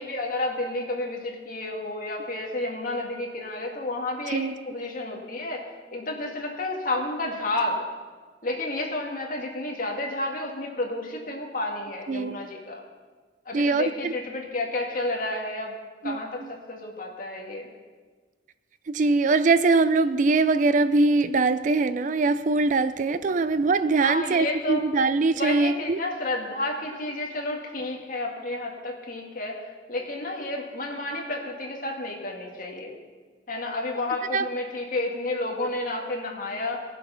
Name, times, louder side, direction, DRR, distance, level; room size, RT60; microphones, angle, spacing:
voice 1, 0.0-5.6 5.9-7.8 8.4-12.8 13.5-15.7 16.0-17.7 24.0-24.8 25.3-29.6 29.9-33.0 33.5-36.8, left 2 dB, 50° left, 2.0 m, -31 dB
voice 2, 13.5-14.1 16.0-16.2 18.9-26.0 34.3-34.4, right 3 dB, 45° right, 0.4 m, -22 dB
17.0 x 7.4 x 5.7 m
head